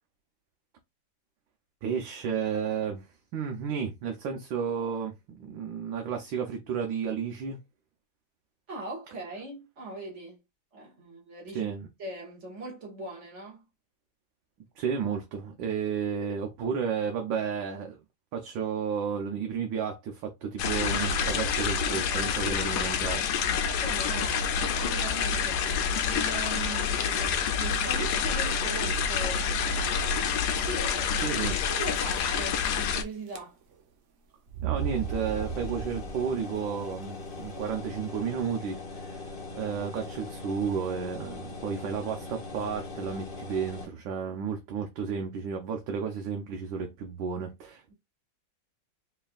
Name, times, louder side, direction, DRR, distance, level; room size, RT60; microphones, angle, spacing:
voice 1, 1.8-3.1 3.3-7.6 11.5-11.9 14.8-18.0 18.3-23.2 31.2-31.6 34.6-39.2 39.5-47.9, right 6 dB, 90° right, 1.5 m, -32 dB
voice 2, 8.7-10.4 10.7-11.7 12.0-13.7 23.8-30.0 30.6-31.3 31.7-33.6, right 2 dB, 40° right, 1.9 m, -40 dB
sound 1, 20.6-33.0, left 6 dB, 70° left, 1.1 m, -28 dB
sound 2, 28.7-29.2 29.8-29.9 30.1-30.2 31.1-31.5 31.8-33.0 33.3-33.8 34.5-36.4, right 9 dB, 60° right, 0.8 m, -36 dB
sound 3, 34.7-43.9, left 3 dB, 40° left, 0.8 m, -41 dB
4.4 x 3.3 x 2.3 m
omnidirectional pair, 2.0 m